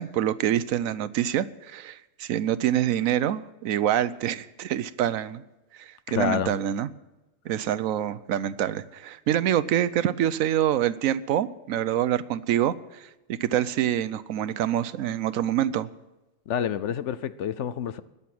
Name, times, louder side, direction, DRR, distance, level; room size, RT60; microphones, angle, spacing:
voice 1, 0.0-5.4 5.8-6.9 7.5-12.7 13.3-15.9, right 11 dB, 85° right, 15 dB, 1.1 m, -26 dB
voice 2, 6.1-6.6 16.5-18.0, left 9 dB, 65° left, 14 dB, 0.9 m, -28 dB
21.0 x 7.0 x 6.0 m, 1.1 s
omnidirectional pair, 1.4 m